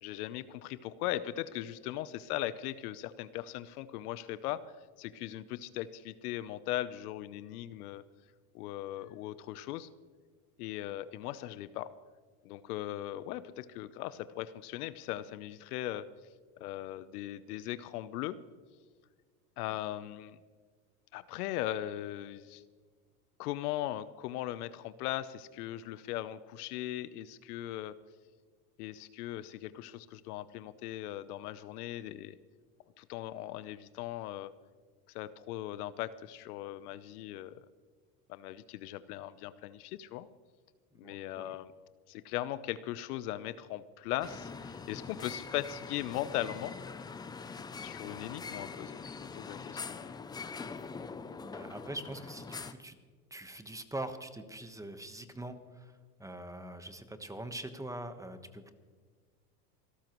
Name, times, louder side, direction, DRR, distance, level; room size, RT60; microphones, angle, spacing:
voice 1, 0.0-4.7 5.0-8.0 8.5-9.9 10.6-11.9 12.4-16.1 16.6-18.4 19.6-20.4 21.1-22.6 23.4-27.9 28.8-32.4 33.0-34.5 35.1-37.6 38.3-40.3 41.0-41.7 42.1-46.8 47.8-50.2, left 14 dB, 70° left, 15 dB, 0.8 m, -39 dB
voice 2, 41.0-41.6 51.4-53.0 53.3-55.9 56.2-58.7, right 1 dB, 5° right, 9 dB, 1.2 m, -43 dB
sound 1, 44.2-52.7, left 5 dB, 10° left, 0.4 m, -43 dB
27.5 x 13.0 x 3.1 m, 1.5 s
hypercardioid pair, 105°, 47 cm